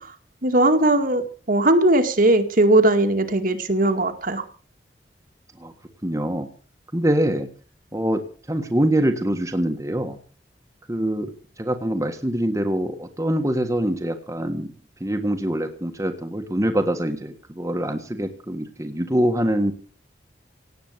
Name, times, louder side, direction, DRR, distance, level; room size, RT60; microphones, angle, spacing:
voice 1, 0.4-4.4, right 1 dB, 50° right, 6 dB, 2.2 m, -19 dB
voice 2, 6.0-6.5 6.9-7.5 7.9-8.2 8.5-10.2 10.9-11.3 11.6-14.7 15.0-19.7, right 1 dB, 15° right, 4 dB, 1.6 m, -24 dB
18.0 x 8.3 x 8.0 m, 0.41 s
head